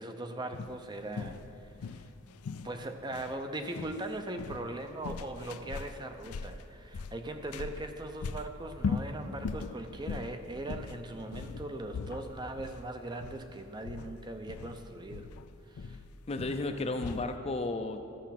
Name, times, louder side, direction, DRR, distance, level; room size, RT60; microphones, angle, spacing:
voice 1, 0.0-2.0 2.6-15.3 15.7-16.0, right 2 dB, 20° right, 6 dB, 0.5 m, -40 dB
sound 1, 0.5-17.4, left 4 dB, 85° left, 0.4 m, -40 dB
voice 2, 16.3-18.1, left 2 dB, 25° left, 7 dB, 0.5 m, -33 dB
14.0 x 7.0 x 5.8 m, 2.6 s
head